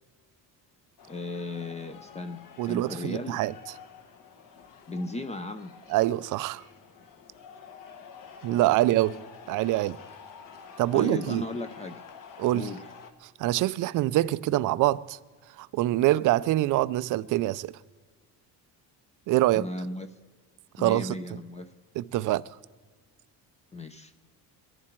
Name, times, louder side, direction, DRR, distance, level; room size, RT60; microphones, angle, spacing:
sound 1, 1.0-13.1, left 6 dB, 55° left, 1.4 m, -49 dB
voice 1, 1.1-3.4 4.9-5.7 10.9-12.0 12.5-12.9 19.5-20.1 20.8-21.7 23.7-24.1, left 2 dB, 15° left, 0.5 m, -36 dB
voice 2, 2.6-3.5 5.9-6.6 8.4-9.2 9.5-10.0 10.8-11.4 12.4-12.7 13.4-15.2 15.6-17.7 19.3-19.7 20.8-21.1 22.0-22.4, right 16 dB, 55° right, 0.4 m, -25 dB
23.5 x 11.0 x 4.5 m
cardioid pair, 140°, 39 cm